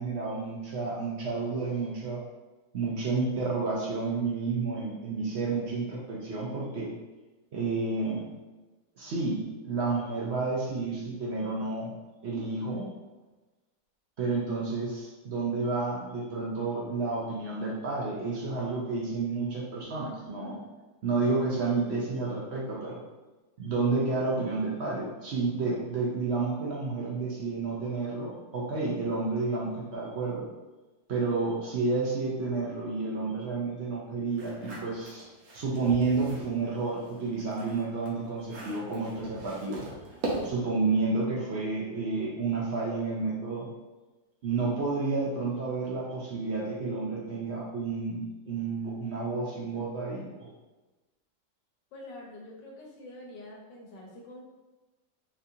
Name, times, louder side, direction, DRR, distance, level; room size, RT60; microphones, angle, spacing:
voice 1, 0.0-2.2 2.7-6.9 7.5-8.2 9.0-11.9 12.2-12.9 14.2-20.6 21.0-23.0 23.6-30.5 31.1-35.3 35.5-39.9 40.4-43.7 44.4-50.3, right 3 dB, 90° right, -5 dB, 0.5 m, -30 dB
sound 1, 34.3-36.5 37.0-40.8, right 2 dB, 60° right, 1.0 m, -39 dB
voice 2, 51.9-54.4, left 1 dB, 75° left, -2 dB, 1.4 m, -46 dB
4.1 x 2.5 x 2.7 m, 1.2 s
omnidirectional pair, 2.0 m